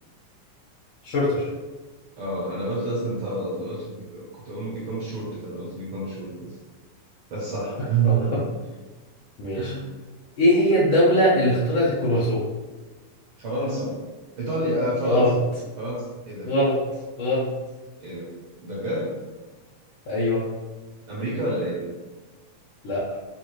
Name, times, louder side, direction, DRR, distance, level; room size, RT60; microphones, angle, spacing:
voice 1, 1.0-1.5 8.0-8.4 9.4-9.7 10.4-12.5 15.0-15.3 16.4-16.8 17.2-17.5 20.1-20.5 22.8-23.0, left 1 dB, 75° left, -8 dB, 1.1 m, -21 dB
voice 2, 2.2-6.5 7.3-8.4 9.5-9.9 13.4-14.0 14.4-15.4 15.8-16.5 18.0-18.3 18.6-19.1 21.1-21.8, right 2 dB, 60° right, -6 dB, 1.5 m, -28 dB
6.3 x 2.7 x 3.1 m, 1.2 s
omnidirectional pair, 3.6 m